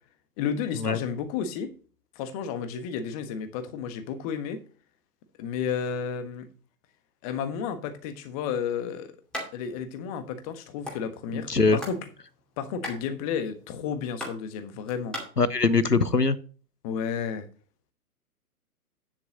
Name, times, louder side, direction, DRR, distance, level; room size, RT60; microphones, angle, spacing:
voice 1, 0.4-1.7 2.1-4.6 5.4-6.5 7.2-9.1 9.5-12.0 12.6-15.2 16.8-17.5, left 7 dB, 25° left, 1.4 m, -32 dB
sound 1, 9.3-9.5 9.8-9.9 10.2-11.0 11.5-12.0 12.3-15.2, equal, ahead, 2.4 m, -37 dB
voice 2, 11.3-11.8 15.4-16.4, left 4 dB, 90° left, 1.2 m, -22 dB
9.7 x 7.4 x 4.0 m
figure-of-eight pair, 120°, 46 cm